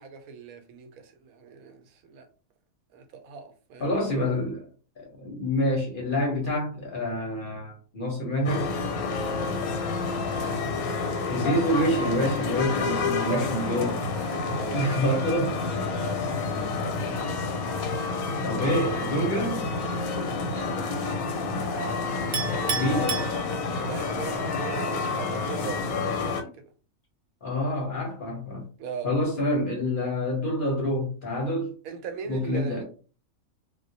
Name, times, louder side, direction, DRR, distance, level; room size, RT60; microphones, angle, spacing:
voice 1, 0.0-2.3 2.9-3.9 9.4-9.9 13.2-15.2 15.5-15.6 15.9-17.1 20.5-20.9 23.7-26.4 28.8-29.1 31.8-32.8, right 6 dB, 85° right, 1.0 m, -40 dB
voice 2, 3.8-4.7 5.0-8.7 11.2-14.0 14.7-15.5 18.4-19.6 22.7-23.3 27.4-28.7 29.0-31.7 32.3-32.8, equal, 50° left, 0.7 m, -27 dB
sound 1, 8.4-26.4, left 4 dB, 90° left, 1.0 m, -29 dB
Chink clink, 22.3-24.0, right 5 dB, 65° right, 0.9 m, -32 dB
2.3 x 2.0 x 2.7 m
omnidirectional pair, 1.4 m